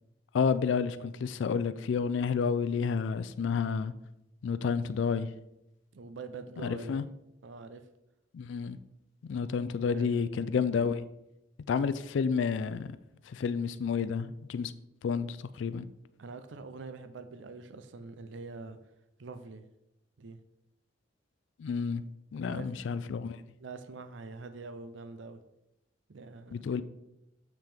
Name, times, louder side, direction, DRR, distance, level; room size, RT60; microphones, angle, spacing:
voice 1, 0.3-3.9 4.4-5.3 6.6-7.0 8.3-8.8 9.2-11.0 11.7-13.0 13.3-14.7 15.0-15.9 21.6-22.0 22.3-23.4 26.5-26.8, left 6 dB, 70° left, 0.3 m, -30 dB
voice 2, 5.9-7.0 7.4-7.8 9.8-10.3 16.2-18.8 19.2-19.6 20.2-20.4 22.4-22.7 23.6-25.4 26.1-26.6, right 3 dB, 70° right, 0.5 m, -44 dB
7.3 x 5.9 x 3.4 m
head